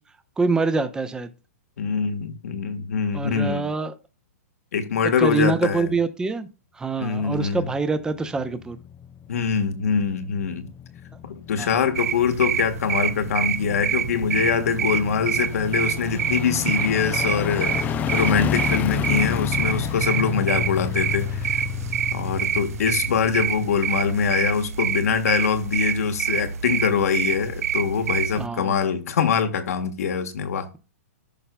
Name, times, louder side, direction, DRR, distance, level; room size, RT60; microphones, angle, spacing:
voice 1, 0.4-1.3 3.1-3.9 5.2-6.5 6.7-8.8 11.6-11.8 28.3-28.7, right 3 dB, 10° right, 0.7 m, -25 dB
voice 2, 1.8-3.7 4.7-5.9 7.0-7.7 9.3-10.7 11.2-21.6 22.1-30.7, left 6 dB, 75° left, 1.4 m, -24 dB
sound 1, 7.8-24.3 24.7-24.8, left 9 dB, 20° left, 0.4 m, -31 dB
sound 2, 11.9-28.5, right 8 dB, 75° right, 0.6 m, -27 dB
14.0 x 5.6 x 2.2 m
hypercardioid pair, 130°, 8 cm